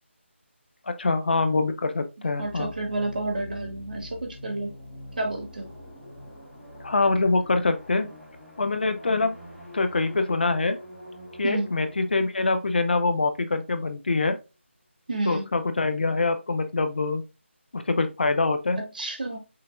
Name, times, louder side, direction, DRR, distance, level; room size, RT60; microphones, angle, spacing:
voice 1, 0.8-2.7 6.8-8.1 8.6-9.4 9.7-10.8 11.4-14.4 15.2-17.2 17.7-18.8, left 3 dB, 50° left, 0.6 m, -24 dB
sound 1, 2.4-13.9, left 1 dB, ahead, 1.1 m, -44 dB
voice 2, 2.4-4.7 5.2-5.7 11.4-11.7 15.1-15.4 18.9-19.4, right 2 dB, 45° right, 1.3 m, -30 dB
5.7 x 3.3 x 2.5 m
figure-of-eight pair, 170°, 7 cm